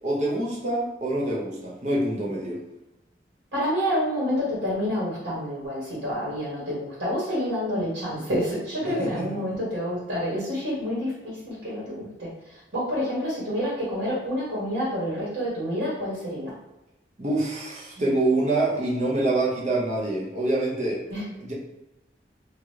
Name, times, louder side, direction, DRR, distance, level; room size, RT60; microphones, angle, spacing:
voice 1, 0.0-2.6 8.8-9.3 17.2-21.0 21.4-21.5, right 2 dB, 40° right, -4 dB, 0.7 m, -26 dB
voice 2, 3.5-16.5 21.1-21.3, equal, 75° right, -7 dB, 1.2 m, -28 dB
2.9 x 2.4 x 3.2 m, 0.96 s
head